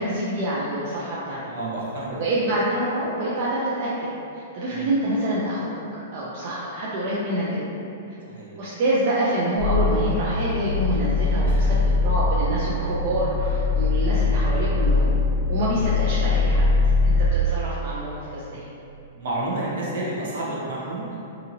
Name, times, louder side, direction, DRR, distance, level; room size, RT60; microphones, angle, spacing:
voice 1, 0.0-1.4 2.2-3.9 4.3-5.7 6.1-7.6 8.6-15.1 15.5-16.7 17.0-18.6, right 1 dB, 45° right, -8 dB, 0.4 m, -26 dB
voice 2, 1.4-2.2 4.7-4.9 8.3-8.5 11.5-11.8 15.9-16.4 19.1-21.2, right 2 dB, 65° right, -6 dB, 0.8 m, -31 dB
sound 1, 9.6-17.3, left 3 dB, 75° left, 0.4 m, -22 dB
2.8 x 2.7 x 2.6 m, 2.8 s
hypercardioid pair, 155°, 0 cm